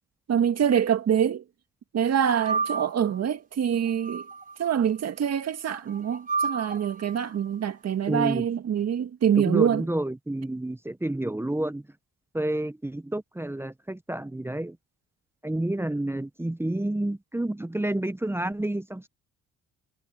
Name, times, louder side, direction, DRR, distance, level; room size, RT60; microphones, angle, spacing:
voice 1, 0.3-1.4 1.9-4.3 4.6-9.9, right 8 dB, 55° right, 2.0 m, -25 dB
sound 1, 2.3-3.1 3.9-4.7 5.7-7.2, right 4 dB, 30° right, 4.9 m, -31 dB
voice 2, 8.1-8.4 9.4-11.8 12.3-14.8 15.4-19.1, right 1 dB, 10° right, 0.8 m, -29 dB
cardioid pair, 90°, 30 cm